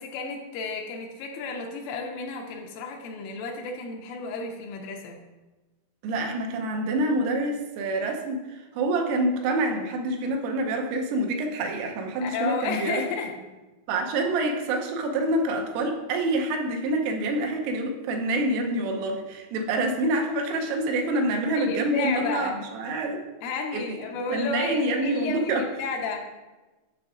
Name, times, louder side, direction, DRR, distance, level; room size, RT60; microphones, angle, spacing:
voice 1, 0.0-5.2 12.2-13.3 21.6-22.7 23.4-26.3, left 4 dB, 85° left, 1 dB, 3.1 m, -32 dB
voice 2, 6.0-8.4 8.7-13.0 13.9-23.2 23.7-24.0 24.3-25.7, right 2 dB, 90° right, 3 dB, 3.3 m, -27 dB
9.6 x 6.0 x 2.4 m, 1.1 s
omnidirectional pair, 5.7 m